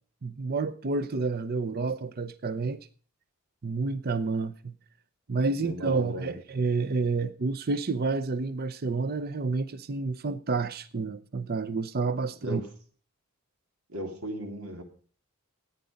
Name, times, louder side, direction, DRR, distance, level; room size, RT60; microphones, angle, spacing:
voice 1, 0.2-2.8 3.6-4.7 5.3-12.6, right 4 dB, 45° right, 0.6 m, -29 dB
voice 2, 5.6-6.4 12.4-12.7 13.9-14.8, equal, 90° right, 3.0 m, -36 dB
14.5 x 9.6 x 5.2 m
head